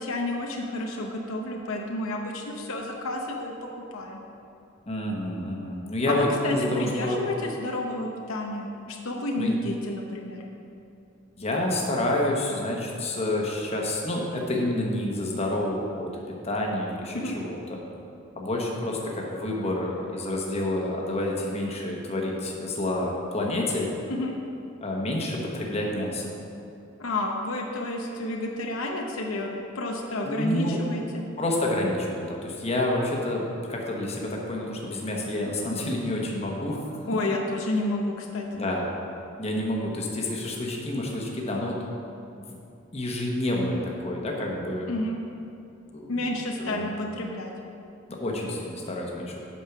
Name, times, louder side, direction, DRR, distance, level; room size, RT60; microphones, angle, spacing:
voice 1, 0.0-4.2 6.1-10.4 17.1-17.4 24.1-24.3 27.0-31.2 37.1-38.5 44.9-45.2 46.1-47.5, left 1 dB, 75° left, 1 dB, 0.8 m, -30 dB
voice 2, 4.9-7.3 9.4-9.5 11.4-17.8 18.4-23.9 24.8-26.3 30.2-30.8 31.4-33.4 33.7-36.9 38.5-38.9 39.4-41.8 42.9-44.9 45.9-46.3 46.6-46.9 48.1-49.3, left 1 dB, 30° left, -1 dB, 1.1 m, -28 dB
8.4 x 5.4 x 5.8 m, 2.7 s
head